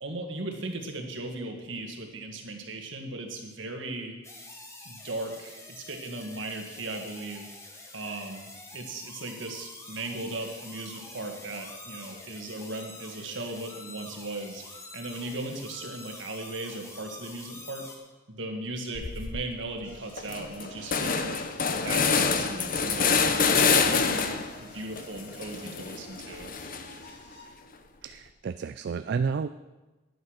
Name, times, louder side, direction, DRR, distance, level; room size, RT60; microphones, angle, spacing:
voice 1, 0.0-4.1 4.9-7.6 7.9-17.9 18.3-21.4 21.7-24.3 24.6-26.5, right 2 dB, 70° right, 3 dB, 1.8 m, -37 dB
sound 1, 4.2-18.0, left 2 dB, 15° left, 1.4 m, -46 dB
sound 2, 18.9-19.4 19.8-19.9 20.2-24.6 25.0-27.1, left 5 dB, 45° left, 0.9 m, -26 dB
sound 3, 19.8-27.5, equal, 65° left, 5.3 m, -52 dB
voice 2, 28.0-29.5, right 5 dB, 55° right, 11 dB, 0.3 m, -31 dB
10.5 x 9.4 x 6.5 m, 1.2 s
head